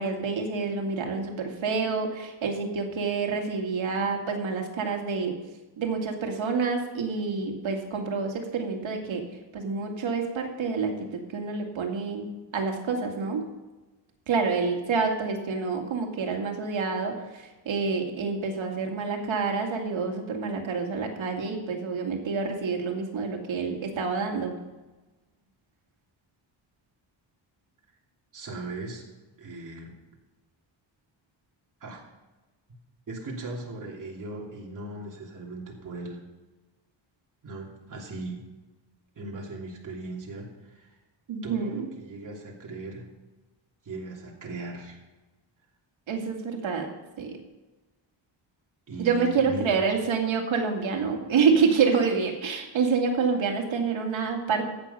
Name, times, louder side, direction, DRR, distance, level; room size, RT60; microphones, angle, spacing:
voice 1, 0.0-5.3 5.8-9.2 9.5-12.3 12.5-13.5 14.3-24.6 41.3-41.9 46.1-46.9 47.2-47.4 49.0-54.6, right 5 dB, 85° right, 2 dB, 2.3 m, -27 dB
voice 2, 28.3-29.0 29.4-29.9 31.8-32.0 33.1-36.2 37.4-38.4 39.2-40.9 41.4-43.1 43.8-45.0 48.9-49.8, right 2 dB, 40° right, -2 dB, 3.0 m, -38 dB
14.5 x 9.0 x 5.6 m, 1.1 s
wide cardioid pair, 175°, 46 cm